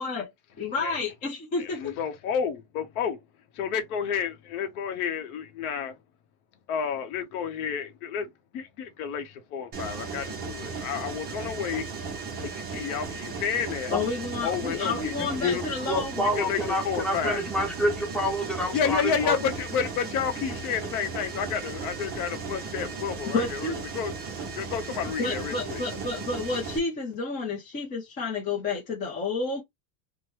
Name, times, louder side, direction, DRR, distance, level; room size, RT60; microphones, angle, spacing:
voice 1, 0.6-1.9 13.9-16.2 23.3-23.8 25.2-29.6, left 4 dB, 20° left, 0.6 m, -30 dB
voice 2, 1.6-3.2 3.5-5.9 6.7-11.9 12.4-13.9 14.4-15.6 16.3-17.4 18.7-24.1 24.6-25.8, left 7 dB, 80° left, 0.9 m, -31 dB
Mechanisms, 9.7-26.8, right 4 dB, 20° right, 0.6 m, -36 dB
voice 3, 15.2-15.5 15.8-19.4, equal, ahead, 1.3 m, -28 dB
3.1 x 2.2 x 3.1 m
supercardioid pair, 165°, 44 cm